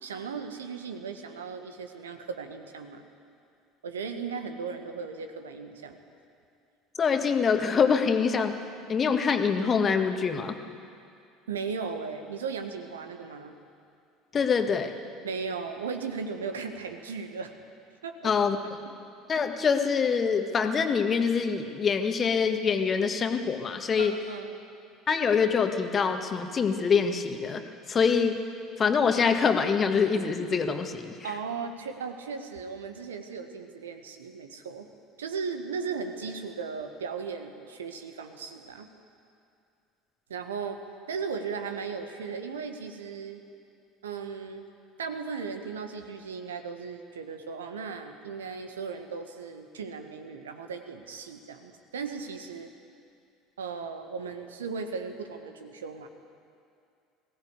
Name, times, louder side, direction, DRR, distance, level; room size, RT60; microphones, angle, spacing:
voice 1, 0.0-3.0 3.8-6.0 11.5-13.5 15.2-17.5 18.0-18.3 24.0-24.5 31.2-34.9 35.2-38.9 40.3-40.8 41.1-43.4 44.0-44.6 45.0-52.7 53.6-56.1, right 5 dB, 70° right, 7 dB, 1.4 m, -36 dB
voice 2, 6.9-8.6 8.9-10.6 14.3-14.9 18.2-18.6 19.3-24.2 25.1-28.4 28.8-31.3, left 6 dB, 30° left, 6 dB, 1.7 m, -25 dB
21.0 x 16.5 x 8.2 m, 2.4 s
figure-of-eight pair, 65°, 0 cm